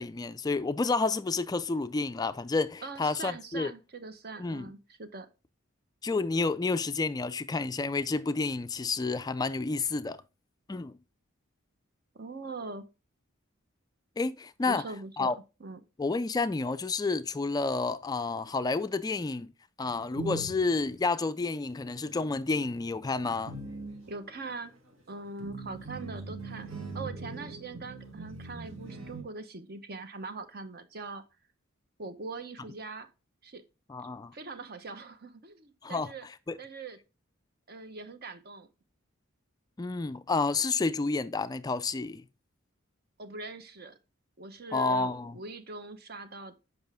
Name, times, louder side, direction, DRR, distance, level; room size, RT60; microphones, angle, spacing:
voice 1, 0.0-3.7 4.4-4.7 6.0-10.2 10.7-11.0 14.2-14.8 15.2-15.3 16.0-19.5 19.8-23.6 33.9-34.3 35.8-36.1 36.5-36.6 39.8-42.2 44.7-45.4, left 3 dB, 20° left, 0.3 m, -30 dB
voice 2, 2.8-5.3 12.1-12.8 14.6-15.8 24.1-24.7 25.1-26.7 26.9-31.2 32.0-33.1 33.4-33.6 34.3-36.3 36.6-37.0 37.7-38.7 43.2-44.0 44.4-46.5, right 3 dB, 50° right, 0.9 m, -42 dB
sound 1, 19.8-21.0 22.0-22.3 22.8-29.2, right 3 dB, 75° right, 2.1 m, -41 dB
7.9 x 5.5 x 3.5 m
head